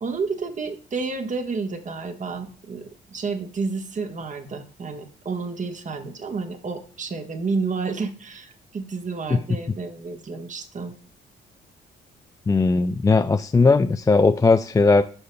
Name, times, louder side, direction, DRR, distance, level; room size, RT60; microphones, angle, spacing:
voice 1, 0.0-10.9, right 4 dB, 40° right, 6 dB, 1.3 m, -30 dB
voice 2, 12.5-15.0, left 3 dB, 15° left, 8 dB, 0.3 m, -18 dB
11.5 x 5.4 x 2.3 m, 0.42 s
cardioid pair, 90°, 20 cm